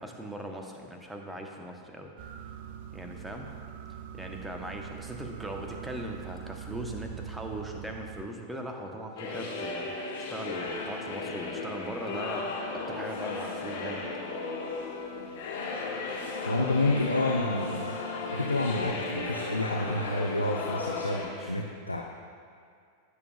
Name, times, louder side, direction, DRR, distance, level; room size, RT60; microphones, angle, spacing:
voice 1, 0.0-2.1 2.9-3.5 4.1-9.9 10.3-12.5 12.7-14.0 21.4-21.6, right 1 dB, 5° right, 2 dB, 1.0 m, -39 dB
sound 1, 2.2-8.3, right 9 dB, 50° right, 0.4 m, -42 dB
sound 2, 9.2-21.3, left 3 dB, 55° left, 1.5 m, -35 dB
voice 2, 16.4-22.0, left 2 dB, 85° left, 1 dB, 0.5 m, -29 dB
15.5 x 6.9 x 2.4 m, 2.3 s
figure-of-eight pair, 90°, 0 cm